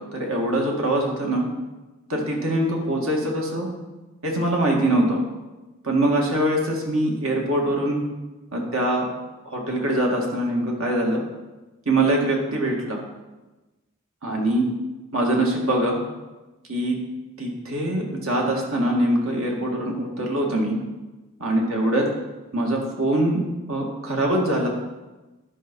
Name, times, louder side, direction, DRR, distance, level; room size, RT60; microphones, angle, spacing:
voice 1, 0.0-1.5 2.1-3.7 4.2-5.2 5.8-8.0 8.5-9.0 9.5-11.2 11.9-13.0 14.2-14.7 15.1-16.0 16.7-17.0 17.4-20.8 21.4-22.0 22.5-23.4 23.7-24.7, right 1 dB, 75° right, 0 dB, 2.1 m, -23 dB
11.5 x 5.7 x 5.4 m, 1.1 s
head